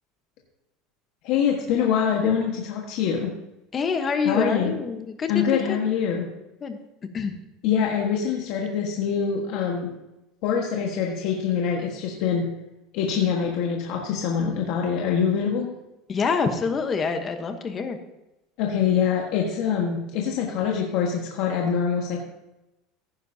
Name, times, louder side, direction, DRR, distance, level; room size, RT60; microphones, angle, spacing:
voice 1, 1.2-3.3 4.2-4.8 5.3-6.3 7.6-9.9 10.4-12.5 12.9-15.7 18.6-22.2, left 7 dB, 55° left, -1 dB, 1.5 m, -24 dB
voice 2, 3.7-5.8 6.6-6.8 7.1-7.3 16.1-18.0, left 5 dB, 25° left, 7 dB, 1.1 m, -26 dB
15.0 x 10.5 x 2.8 m, 0.96 s
cardioid pair, 155°, 0 cm